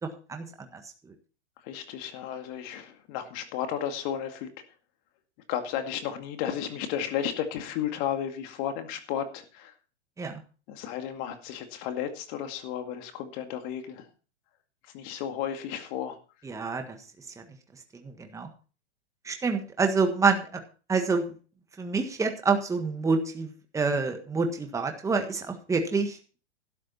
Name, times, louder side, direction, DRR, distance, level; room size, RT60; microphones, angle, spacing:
voice 1, 0.0-0.4 0.7-0.8 10.2-10.4 16.4-17.0 18.0-18.5 19.2-20.6 20.9-21.2 21.8-26.2, right 4 dB, 10° right, 5 dB, 1.5 m, -27 dB
voice 2, 1.6-4.5 5.5-9.7 10.7-14.0 14.9-16.2, left 9 dB, 45° left, 7 dB, 2.2 m, -33 dB
12.5 x 10.0 x 4.2 m, 0.36 s
hypercardioid pair, 135°, 34 cm